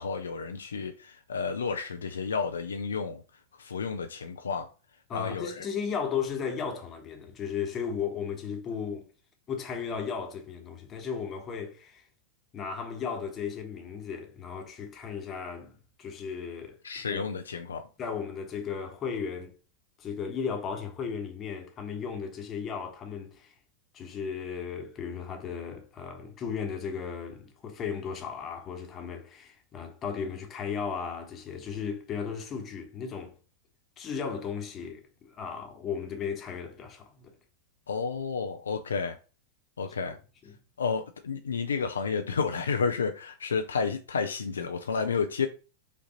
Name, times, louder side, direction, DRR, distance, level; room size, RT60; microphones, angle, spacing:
voice 1, 0.0-3.2 3.6-4.7 5.1-5.7 16.8-17.9 37.9-39.2 39.8-40.2 40.8-45.5, left 5 dB, 70° left, 0.4 m, -31 dB
voice 2, 5.1-9.1 9.5-12.1 12.5-16.8 17.1-17.3 18.0-19.5 20.0-23.5 23.9-33.3 34.0-37.4 40.4-40.6, left 6 dB, 30° left, 1.0 m, -35 dB
5.2 x 2.5 x 4.0 m
figure-of-eight pair, 90°, 0 cm